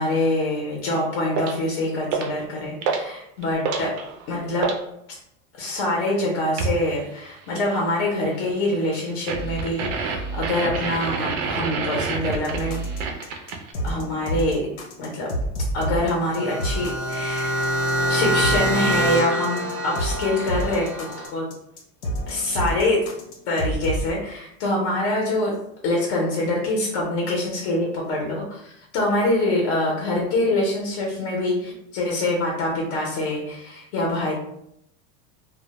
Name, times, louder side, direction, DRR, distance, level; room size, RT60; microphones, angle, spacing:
voice 1, 0.0-3.9 4.3-4.7 5.6-12.8 13.1-13.5 13.8-14.6 15.0-15.3 15.7-21.5 22.3-23.0 23.5-25.5 25.8-34.3, left 1 dB, 40° left, -2 dB, 0.5 m, -25 dB
sound 1, 1.4-1.6 2.1-2.4 2.8-3.1 3.4-4.8 6.6-6.8 9.3-13.7, right 4 dB, 65° right, 0.5 m, -27 dB
sound 2, 12.3-24.1, equal, 85° left, 0.8 m, -30 dB
sound 3, 16.2-21.3, equal, 10° right, 0.5 m, -25 dB
2.1 x 2.1 x 2.8 m, 0.76 s
supercardioid pair, 170°, 40 cm